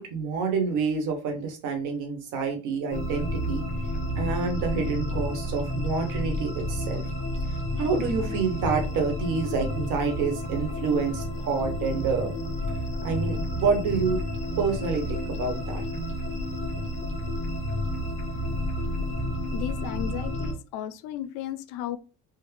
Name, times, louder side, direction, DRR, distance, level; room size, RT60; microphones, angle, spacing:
voice 1, 0.0-3.7 4.2-7.1 7.8-12.3 13.0-14.2 14.6-15.8, right 5 dB, 75° right, 1.1 m, -28 dB
sound 1, 2.9-20.5, equal, 20° left, 0.8 m, -30 dB
voice 2, 19.5-22.0, left 11 dB, 75° left, 0.5 m, -34 dB
3.5 x 2.1 x 3.3 m
cardioid pair, 125°, 31 cm